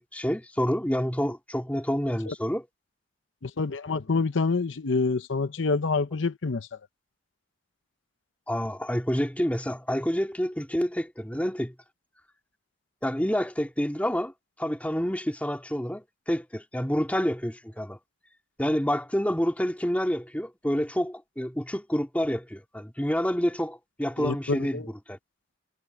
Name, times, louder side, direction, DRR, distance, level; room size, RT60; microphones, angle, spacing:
voice 1, 0.0-2.7 8.5-11.7 13.0-14.3 14.6-18.0 18.6-25.2, equal, 10° left, 2.5 m, -28 dB
voice 2, 3.4-6.7 24.2-24.9, left 4 dB, 90° left, 0.8 m, -27 dB
head